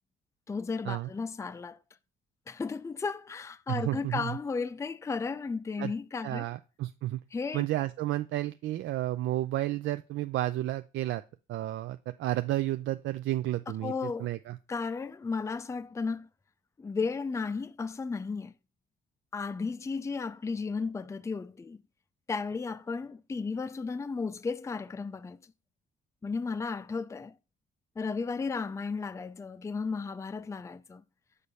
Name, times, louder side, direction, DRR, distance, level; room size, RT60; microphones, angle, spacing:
voice 1, 0.5-1.8 2.5-6.4 7.3-7.6 13.8-14.3 14.7-16.3 16.8-18.5 19.3-21.8 22.3-25.4 26.2-27.4 28.0-31.0, left 4 dB, 15° left, 0.4 m, -34 dB
voice 2, 3.7-4.4 5.8-5.9 6.2-7.2 7.5-11.2 11.5-14.6, right 15 dB, 75° right, 0.4 m, -32 dB
6.7 x 3.2 x 5.5 m
cardioid pair, 90°, 20 cm